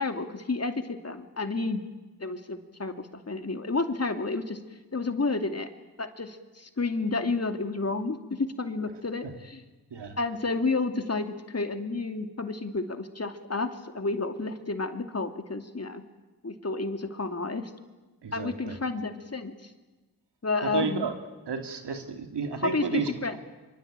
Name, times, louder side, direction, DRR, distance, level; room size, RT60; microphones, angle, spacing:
voice 1, 0.0-1.8 2.2-4.6 4.9-5.7 6.0-9.6 10.2-16.0 16.4-17.7 18.3-19.7 20.4-21.1 22.6-23.4, left 3 dB, 35° left, 7 dB, 2.8 m, -31 dB
voice 2, 18.2-18.8 20.6-21.1 21.5-23.4, right 5 dB, 80° right, 6 dB, 2.7 m, -32 dB
25.0 x 24.0 x 9.0 m, 1.2 s
cardioid pair, 45°, 41 cm